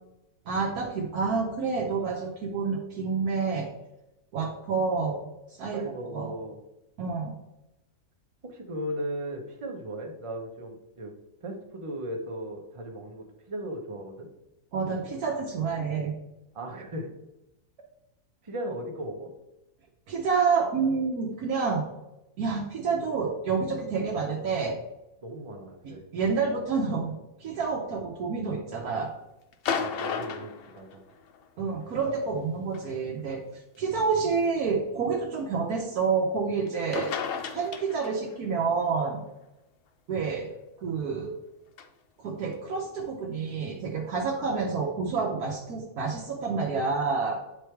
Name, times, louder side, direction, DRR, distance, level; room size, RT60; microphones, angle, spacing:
voice 1, 0.5-3.7 4.3-5.2 5.6-6.3 7.0-7.3 14.7-16.1 20.1-21.9 22.4-24.8 25.8-29.1 31.6-33.4 33.8-37.1 37.5-39.2 40.1-40.5 40.8-41.3 42.2-47.4, right 5 dB, 70° right, 0 dB, 1.2 m, -28 dB
voice 2, 5.7-6.6 8.4-11.1 11.4-14.3 16.5-17.1 18.4-19.3 25.2-26.0 29.8-31.0 33.8-34.0, right 1 dB, 25° right, 3 dB, 0.7 m, -37 dB
sound 1, 29.5-31.4 32.7-32.9 33.8-33.9 36.7-36.8 36.9-38.4 41.8-41.9, left 6 dB, 80° left, 0.5 m, -33 dB
8.5 x 3.3 x 4.5 m, 0.92 s
omnidirectional pair, 1.7 m